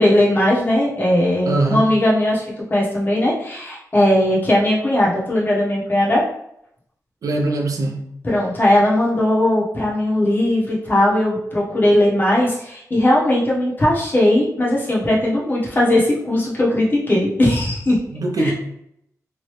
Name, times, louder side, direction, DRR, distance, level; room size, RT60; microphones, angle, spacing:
voice 1, 0.0-2.4 2.7-6.2 8.2-18.0 18.4-18.5, left 1 dB, 30° left, -6 dB, 1.1 m, -18 dB
voice 2, 1.5-1.9 7.2-8.0 18.1-18.5, right 2 dB, 75° right, 1 dB, 0.6 m, -21 dB
3.0 x 2.6 x 3.2 m, 0.74 s
wide cardioid pair, 95°, 6 cm